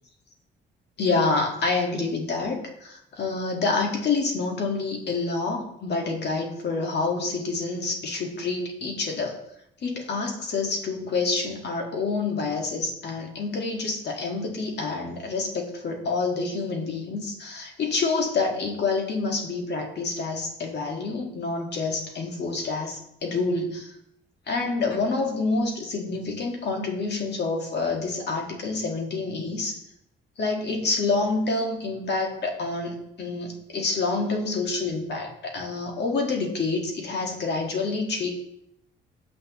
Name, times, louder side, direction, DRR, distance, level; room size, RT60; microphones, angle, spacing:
voice 1, 1.0-9.4 9.8-23.9 24.5-29.8 30.4-38.3, left 3 dB, 60° left, 1 dB, 1.7 m, -27 dB
7.8 x 7.8 x 3.0 m, 0.79 s
cardioid pair, 90°, 20 cm